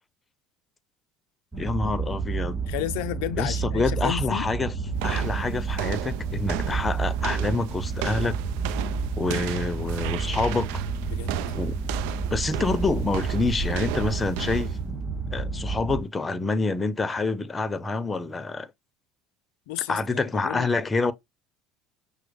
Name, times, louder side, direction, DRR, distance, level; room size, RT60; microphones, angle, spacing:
sound 1, 1.5-16.0, right 5 dB, 15° right, 3.1 m, -30 dB
voice 1, 1.6-2.6 3.4-4.7 5.0-8.4 9.2-10.8 11.5-11.8 12.3-14.8 15.3-18.7 19.9-21.1, left 3 dB, 20° left, 0.7 m, -27 dB
voice 2, 2.7-4.5 5.1-5.3 6.7-6.8 11.1-11.4 19.7-20.7, left 14 dB, 80° left, 0.4 m, -33 dB
sound 2, 4.9-14.9, right 10 dB, 80° right, 0.4 m, -34 dB
6.1 x 2.1 x 3.1 m
supercardioid pair, 90°, 0 cm